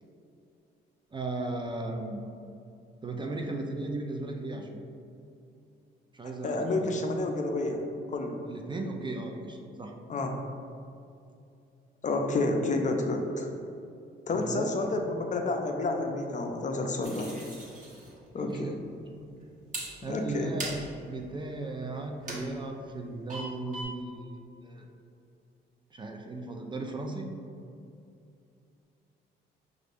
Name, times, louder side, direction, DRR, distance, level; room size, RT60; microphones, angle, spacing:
voice 1, 1.1-2.2 3.0-4.8 6.1-6.9 8.5-10.0 14.3-15.1 18.4-18.8 19.1-19.3 20.0-24.9 25.9-27.3, right 2 dB, 25° right, 3 dB, 0.4 m, -36 dB
voice 2, 6.4-7.8 8.1-8.4 10.1-10.4 12.0-13.5 14.3-17.3 18.3-18.7 20.1-20.5, left 2 dB, 40° left, 3 dB, 0.5 m, -29 dB
sound 1, 17.0-18.6 18.8-20.3 20.6-23.0 23.3-23.8, right 1 dB, 40° right, 1.2 m, -40 dB
5.0 x 2.5 x 3.3 m, 2.6 s
cardioid pair, 90°, 20 cm